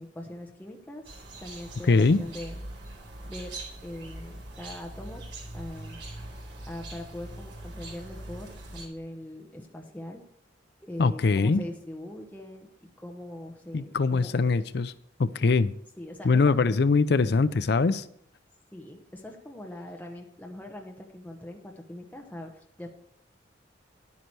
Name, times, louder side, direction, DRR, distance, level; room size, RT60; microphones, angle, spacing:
voice 1, 0.0-2.6 3.2-3.6 3.8-5.2 5.5-6.0 6.7-10.2 10.8-14.3 16.0-16.5 18.7-22.9, left 1 dB, 10° left, 1.1 m, -41 dB
sound 1, 1.0-8.9, right 2 dB, 75° right, 4.2 m, -42 dB
voice 2, 1.9-2.2 11.0-11.6 13.7-14.9 15.2-15.7 16.2-18.0, left 4 dB, 60° left, 0.5 m, -22 dB
10.5 x 9.6 x 4.7 m
head